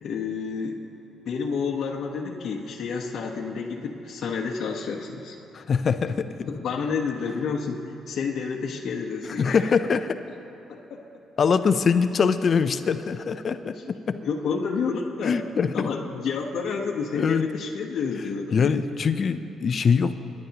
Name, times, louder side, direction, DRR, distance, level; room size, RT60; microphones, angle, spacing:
voice 1, 0.0-0.8 1.3-5.4 6.5-9.6 10.9-11.0 13.6-13.8 14.2-15.4 15.7-18.8, left 5 dB, 65° left, -1 dB, 1.0 m, -29 dB
voice 2, 5.5-6.5 9.2-10.1 11.4-14.2 15.2-15.9 17.1-17.5 18.5-20.1, left 6 dB, 50° left, 11 dB, 0.5 m, -23 dB
29.0 x 10.5 x 2.9 m, 3.0 s
cardioid pair, 90°, 0 cm